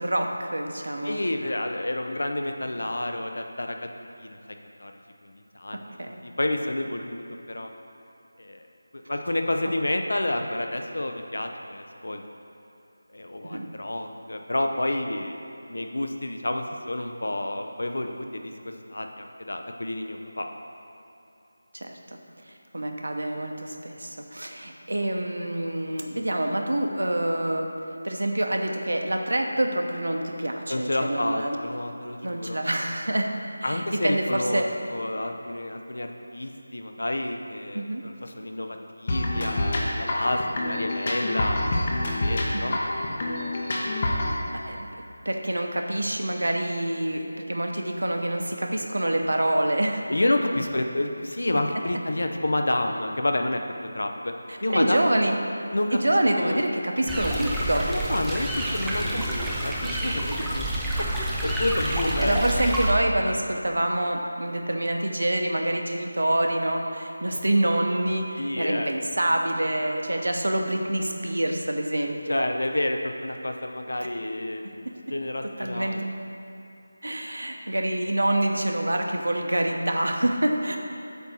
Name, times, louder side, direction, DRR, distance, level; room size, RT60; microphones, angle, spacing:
voice 1, 0.0-1.2 6.0-6.2 13.4-13.7 21.7-22.2 22.7-27.7 28.0-31.6 32.2-33.3 33.6-34.7 37.7-38.0 42.5-42.8 44.5-44.9 45.2-50.0 54.5-55.4 55.9-57.8 59.2-59.5 61.0-61.1 61.8-72.5 75.6-76.0 77.0-80.8, right 1 dB, 85° right, 3 dB, 0.8 m, -26 dB
voice 2, 1.0-3.9 4.2-5.8 6.2-7.7 8.4-8.7 8.9-12.2 13.1-15.4 15.7-18.5 18.9-20.5 30.7-32.6 33.6-41.6 42.1-43.3 43.8-44.1 50.1-54.3 54.6-55.1 55.7-56.0 56.4-56.6 57.9-60.7 61.4-62.6 68.4-68.9 72.3-74.7 75.1-76.1, left 1 dB, 75° left, 4 dB, 0.6 m, -29 dB
sound 1, 39.1-44.3, left 1 dB, 35° left, 0.8 m, -27 dB
sound 2, 57.1-62.9, right 1 dB, 5° right, 0.4 m, -28 dB
8.1 x 2.7 x 6.1 m, 2.9 s
figure-of-eight pair, 170°, 0 cm